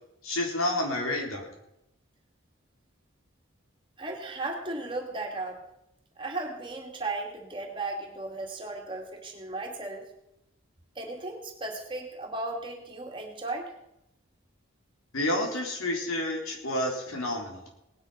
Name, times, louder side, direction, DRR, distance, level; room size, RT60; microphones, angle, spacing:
voice 1, 0.2-1.5 15.1-17.6, left 1 dB, 85° left, 1 dB, 3.8 m, -29 dB
voice 2, 4.0-5.6 6.2-10.1 11.0-13.7, right 2 dB, 25° right, 2 dB, 2.3 m, -35 dB
18.5 x 10.0 x 5.7 m, 0.84 s
head